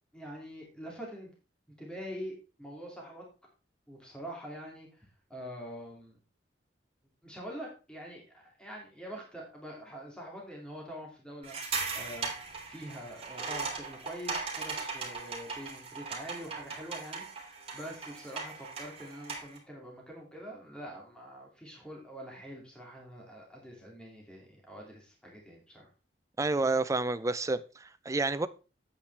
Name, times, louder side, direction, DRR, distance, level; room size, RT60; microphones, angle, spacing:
voice 1, 0.1-1.3 1.8-3.3 3.9-6.2 7.2-12.3 12.7-25.9, equal, 5° left, 2.4 m, -45 dB
sound 1, 11.4-19.6, right 4 dB, 35° right, 3.0 m, -38 dB
voice 2, 26.4-28.5, right 3 dB, 20° right, 0.5 m, -29 dB
8.6 x 8.2 x 3.3 m
head